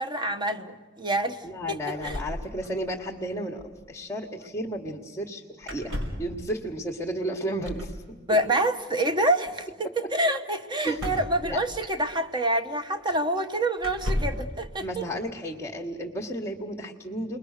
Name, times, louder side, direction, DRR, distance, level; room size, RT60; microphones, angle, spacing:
voice 1, 0.0-1.4 1.7-2.1 8.3-15.0, right 1 dB, 25° right, 7 dB, 1.1 m, -27 dB
voice 2, 1.4-8.0 10.0-10.1 10.8-11.0 11.4-11.9 14.8-17.4, equal, 10° left, -1 dB, 1.4 m, -33 dB
sound 1, 2.0-3.1 3.3-3.4 3.6-3.8 5.6-6.3 7.6-8.0 10.9-12.1 13.0-13.1 13.8-14.5, equal, 85° right, 5.8 m, -33 dB
29.5 x 22.0 x 6.6 m, 1.4 s
head